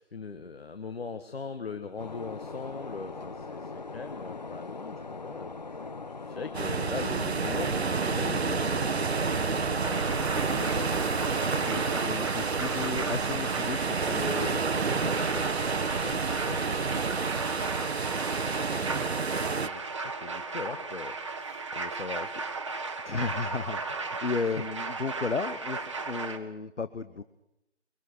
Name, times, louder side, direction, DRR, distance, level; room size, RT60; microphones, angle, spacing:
voice 1, 0.0-5.6 6.2-9.9 10.1-11.0 16.0-16.7 18.6-22.4, left 4 dB, 55° left, 8 dB, 1.6 m, -41 dB
sound 1, 2.0-12.1, left 3 dB, 35° left, 0.7 m, -41 dB
sound 2, 6.5-19.7, right 4 dB, 60° right, 1.1 m, -29 dB
sound 3, 9.8-26.4, right 3 dB, 25° right, 1.1 m, -36 dB
voice 2, 11.7-15.4 23.0-27.2, left 4 dB, 80° left, 13 dB, 1.2 m, -34 dB
23.5 x 23.5 x 6.4 m, 0.85 s
figure-of-eight pair, 165°, 35 cm